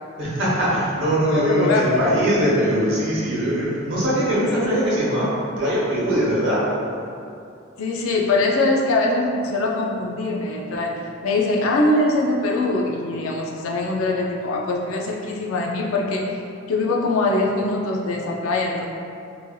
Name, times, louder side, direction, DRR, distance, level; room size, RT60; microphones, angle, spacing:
voice 1, 0.2-5.3 5.6-6.6, equal, 65° right, -8 dB, 0.8 m, -21 dB
voice 2, 1.3-2.2 4.3-4.8 7.8-16.4 16.7-18.9, left 2 dB, 80° left, 0 dB, 0.4 m, -22 dB
3.1 x 2.5 x 2.2 m, 2.5 s
head